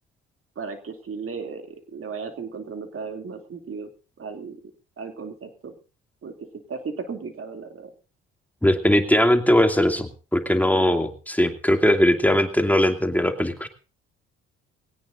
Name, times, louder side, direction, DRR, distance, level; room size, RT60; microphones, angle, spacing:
voice 1, 0.6-3.9 4.2-4.6 5.0-5.7 6.2-6.3 6.7-7.9, right 5 dB, 45° right, 5 dB, 2.9 m, -35 dB
voice 2, 8.6-13.7, left 1 dB, 5° left, 5 dB, 2.5 m, -20 dB
21.5 x 17.5 x 2.7 m, 0.35 s
hypercardioid pair, 55°, 29 cm